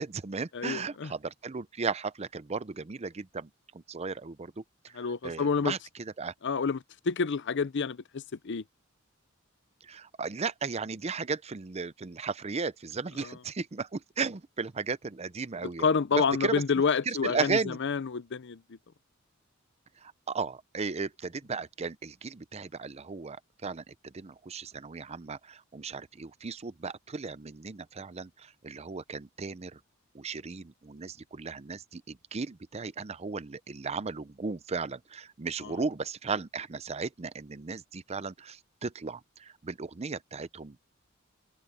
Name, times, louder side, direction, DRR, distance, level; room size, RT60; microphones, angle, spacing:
voice 1, 0.0-4.9 5.2-6.3 9.8-15.8 16.4-16.6 17.1-17.8 20.0-23.4 23.6-29.8 30.1-40.8, right 4 dB, 30° right, 0.6 m, -35 dB
voice 2, 0.5-1.1 4.9-5.7 6.4-8.6 13.2-13.4 15.8-18.8 35.6-35.7, left 5 dB, 60° left, 0.6 m, -29 dB
head